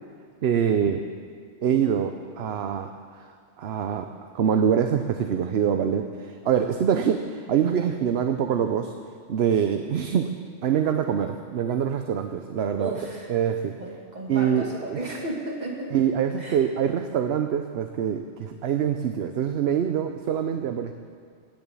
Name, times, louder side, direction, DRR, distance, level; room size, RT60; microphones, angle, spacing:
voice 1, 0.4-1.1 1.6-2.9 3.6-8.9 9.3-10.3 10.6-12.9 13.3-13.7 14.3-15.0 15.9-20.9, right 8 dB, 65° right, 7 dB, 0.9 m, -24 dB
voice 2, 12.8-13.3 13.8-16.0 16.4-16.6, right 2 dB, 40° right, -2 dB, 2.5 m, -34 dB
16.0 x 7.0 x 9.1 m, 2.2 s
omnidirectional pair, 1.2 m